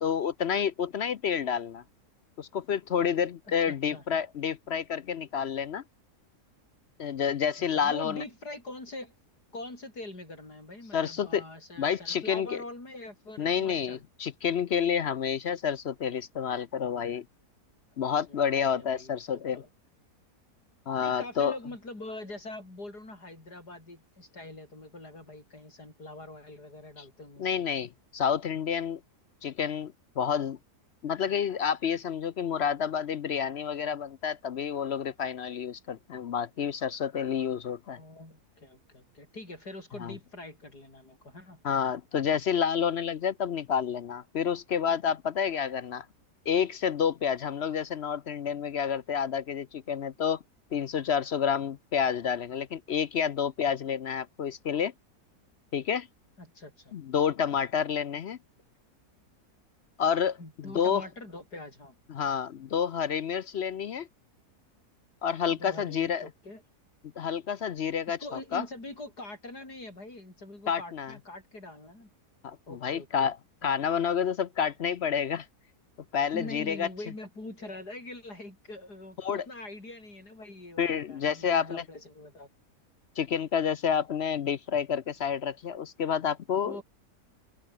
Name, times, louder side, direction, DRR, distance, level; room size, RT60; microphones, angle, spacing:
voice 1, 0.0-1.8 2.4-5.8 7.0-8.2 10.9-11.4 11.8-12.6 13.4-17.2 18.0-19.6 20.9-21.5 27.0-27.1 27.4-29.0 29.4-30.6 31.0-38.0 40.0-40.1 41.6-46.1 46.5-50.4 50.7-54.9 55.7-56.1 56.9-58.4 60.0-61.0 62.1-64.1 65.2-66.3 67.2-68.6 70.7-71.1 72.4-73.4 73.6-75.5 76.1-76.9 79.2-79.5 80.8-81.8 83.2-86.8, left 7 dB, 55° left, 0.7 m, -29 dB
voice 2, 3.6-4.0 7.7-9.1 9.5-14.0 18.3-19.7 21.0-27.5 38.0-41.6 56.4-56.9 60.4-61.9 65.5-66.6 68.1-72.1 72.7-73.3 76.3-82.5 86.6-86.8, left 2 dB, 80° left, 7.9 m, -43 dB
omnidirectional pair, 1.7 m